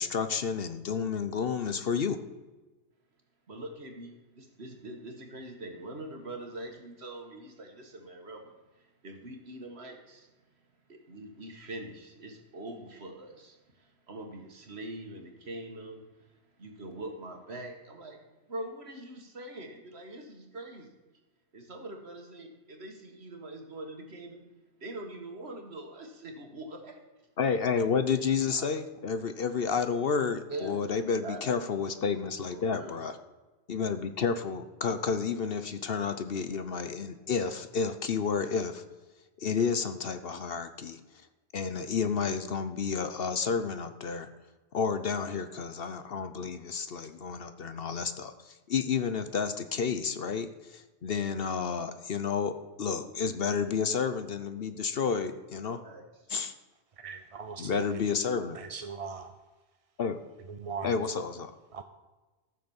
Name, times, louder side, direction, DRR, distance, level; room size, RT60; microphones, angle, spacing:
voice 1, 0.0-2.2 27.4-33.2 33.7-38.8 39.4-41.2 41.5-44.3 44.7-55.8 56.3-56.5 57.6-58.6 60.0-60.2 60.8-61.5, left 6 dB, 55° left, 10 dB, 0.9 m, -31 dB
voice 2, 3.5-10.3 10.9-16.3 16.6-18.2 18.5-20.9 21.5-24.5 24.8-27.0 27.4-27.6 28.5-28.7 30.5-30.8 31.2-31.4 32.5-33.0 55.8-56.3, right 1 dB, 60° right, 4 dB, 2.0 m, -43 dB
voice 3, 57.0-58.0 58.5-59.3 60.5-60.9 61.7-61.8, right 5 dB, 40° right, 8 dB, 0.5 m, -40 dB
14.0 x 6.6 x 7.1 m, 1.2 s
omnidirectional pair, 1.2 m